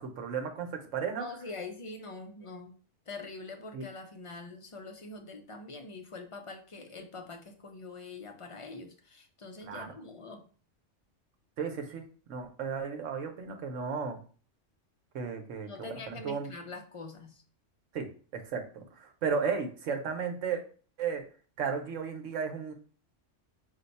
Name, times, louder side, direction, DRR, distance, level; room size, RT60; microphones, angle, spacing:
voice 1, 0.0-1.2 3.7-3.8 9.6-9.9 11.6-12.0 12.3-14.2 15.1-16.5 17.9-18.1 18.3-20.6 21.0-21.2 21.6-22.7, right 6 dB, 85° right, 4 dB, 1.1 m, -34 dB
voice 2, 1.2-2.8 3.1-10.4 15.6-17.4, left 3 dB, 40° left, 4 dB, 0.5 m, -44 dB
5.6 x 2.2 x 4.0 m, 0.40 s
omnidirectional pair, 1.3 m